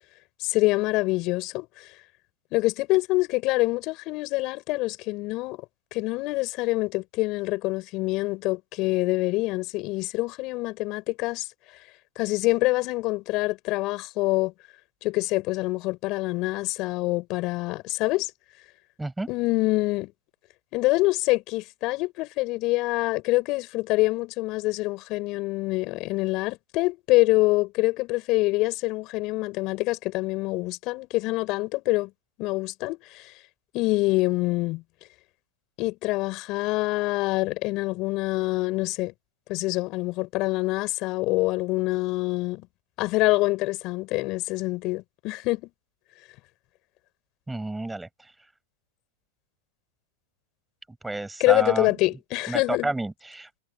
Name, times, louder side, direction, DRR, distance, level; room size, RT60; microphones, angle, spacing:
voice 1, 0.4-1.9 2.5-5.6 5.9-11.5 12.2-14.5 15.0-18.3 19.3-20.1 20.7-32.1 32.4-33.3 33.7-34.8 35.8-39.1 39.5-42.7 43.0-45.7 51.4-52.9, left 21 dB, 40° left, 7.0 m, -25 dB
voice 2, 19.0-19.3 47.5-48.1 51.0-51.9 52.5-53.6, right 2 dB, 5° right, 6.4 m, -30 dB
hypercardioid pair, 125°, 0 cm